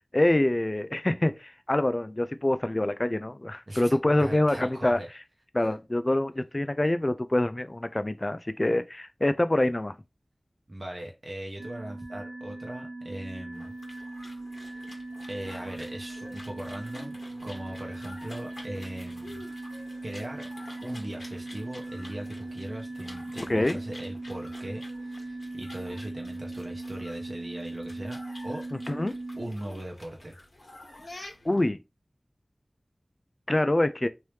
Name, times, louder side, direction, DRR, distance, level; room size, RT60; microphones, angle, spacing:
voice 1, 0.1-5.0 5.5-10.0 23.4-23.8 28.7-29.1 31.2-31.8 33.5-34.1, left 1 dB, 35° left, 0.3 m, -26 dB
voice 2, 3.7-5.1 5.6-5.7 10.7-13.7 14.6-19.4 20.0-20.5 20.8-28.7 29.3-30.4, right 1 dB, 45° right, 0.8 m, -39 dB
sound 1, 11.6-29.5, right 2 dB, 85° right, 1.2 m, -39 dB
sound 2, 13.5-31.7, left 1 dB, 65° left, 1.4 m, -49 dB
3.2 x 2.7 x 3.2 m
wide cardioid pair, 45°, 0 cm